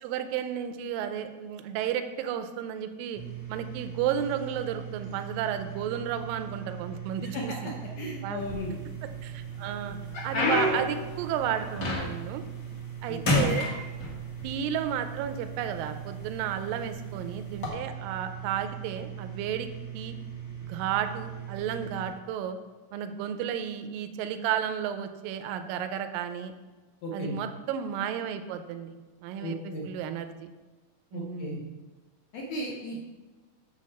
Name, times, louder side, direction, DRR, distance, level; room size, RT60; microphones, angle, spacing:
voice 1, 0.0-3.2 3.5-7.7 8.2-8.4 9.2-10.0 10.2-12.4 13.0-13.7 14.4-19.7 19.9-20.2 20.6-22.6 22.9-26.5 27.1-28.9 29.2-29.6 29.8-30.5 31.1-31.7, right 9 dB, 80° right, 9 dB, 2.1 m, -32 dB
sound 1, 3.1-22.1, right 9 dB, 15° left, 0.9 m, -40 dB
voice 2, 8.0-8.8 13.1-13.5 27.0-27.4 29.4-29.9 31.1-31.6 32.3-33.0, left 1 dB, 75° left, -1 dB, 1.6 m, -36 dB
sound 2, 8.4-9.1 9.6-12.4 12.7-13.0 13.2-14.5 15.3-15.4 16.1-16.3 17.5-17.7, left 2 dB, 55° left, 1.2 m, -28 dB
8.3 x 6.9 x 4.2 m, 1.3 s
omnidirectional pair, 4.4 m